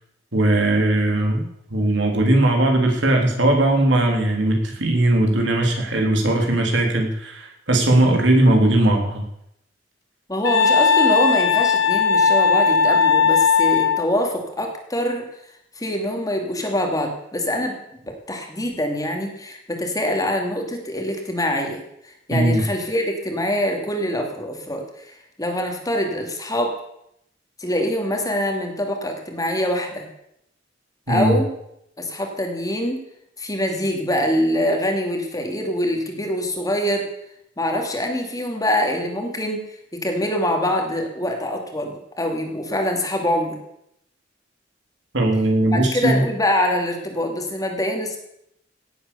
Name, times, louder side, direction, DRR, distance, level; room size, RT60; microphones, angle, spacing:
voice 1, 0.3-9.2 22.3-22.6 31.1-31.4 45.1-46.2, right 1 dB, 70° right, 1 dB, 3.4 m, -19 dB
voice 2, 10.3-15.2 15.8-17.7 18.1-21.8 22.3-26.7 27.6-30.1 31.1-31.5 32.0-33.0 33.4-37.1 37.6-39.6 39.9-43.6 45.7-48.2, equal, 20° left, 3 dB, 2.7 m, -24 dB
Wind instrument woodwind instrument, 10.4-14.1, left 5 dB, 80° left, 1.3 m, -17 dB
17.5 x 8.5 x 6.9 m, 0.77 s
head